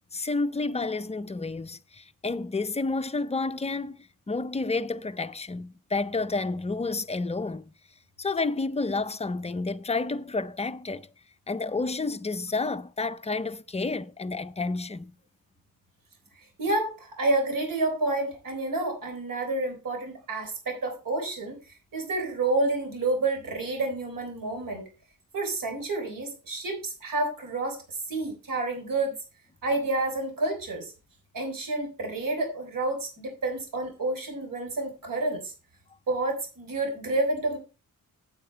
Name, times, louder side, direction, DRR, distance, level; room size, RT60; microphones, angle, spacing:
voice 1, 0.1-7.7 8.2-11.1 11.5-15.1, left 3 dB, 20° left, 0.5 m, -30 dB
voice 2, 16.6-24.8 25.3-29.1 29.6-30.9 31.3-35.5 36.1-37.6, right 2 dB, 70° right, 3.7 m, -29 dB
8.7 x 8.6 x 4.4 m
wide cardioid pair, 150°, 34 cm